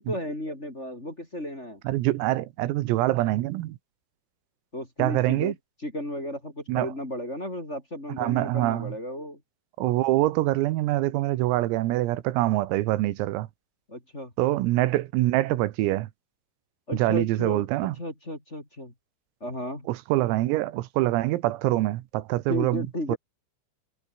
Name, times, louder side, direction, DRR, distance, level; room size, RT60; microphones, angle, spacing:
voice 1, 0.0-1.8 4.7-5.5 5.8-9.4 13.9-14.3 16.9-18.9 19.4-19.9 22.5-23.2, left 1 dB, 15° left, 3.7 m, -34 dB
voice 2, 1.9-3.8 5.0-5.5 6.7-6.9 8.2-8.9 9.8-13.5 14.4-16.1 16.9-18.0 19.9-23.2, right 17 dB, 90° right, 4.0 m, -25 dB
omnidirectional pair, 5.9 m